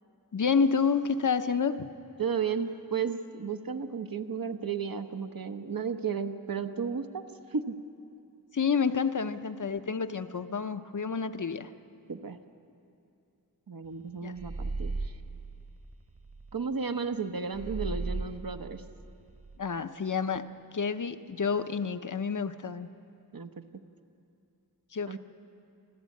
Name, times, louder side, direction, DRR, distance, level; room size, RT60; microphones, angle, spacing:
voice 1, 0.3-1.9 8.5-11.7 14.2-14.3 19.6-20.4 20.7-22.9 24.9-25.2, left 5 dB, 55° left, 10 dB, 0.8 m, -29 dB
voice 2, 2.2-7.2 7.5-7.8 12.1-12.4 13.7-15.1 16.5-18.8 23.3-23.6 25.1-25.2, right 6 dB, 65° right, 7 dB, 1.1 m, -33 dB
sound 1, 14.4-16.5 17.5-19.6, right 3 dB, 40° right, 1.3 m, -37 dB
28.5 x 12.0 x 8.5 m, 2.6 s
wide cardioid pair, 75°, 38 cm